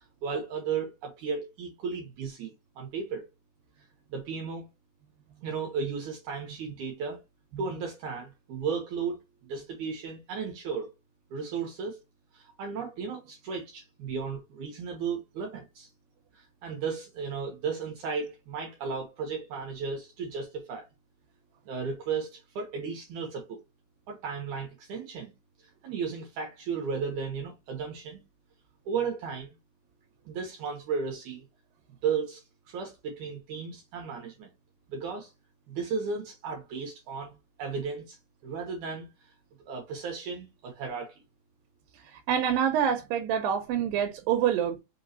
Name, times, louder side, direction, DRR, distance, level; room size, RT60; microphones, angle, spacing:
voice 1, 0.0-3.3 4.1-4.7 5.4-7.2 7.6-10.9 11.3-12.0 12.3-15.9 16.3-20.9 21.7-23.6 24.1-25.3 25.8-28.2 28.9-29.6 30.3-31.5 32.0-34.5 34.9-35.3 35.7-38.2 38.4-39.3 39.7-41.2, right 5 dB, 70° right, 2.1 m, -35 dB
voice 2, 42.1-44.8, right 9 dB, 85° right, 2.4 m, -26 dB
5.6 x 3.0 x 2.6 m
omnidirectional pair, 3.9 m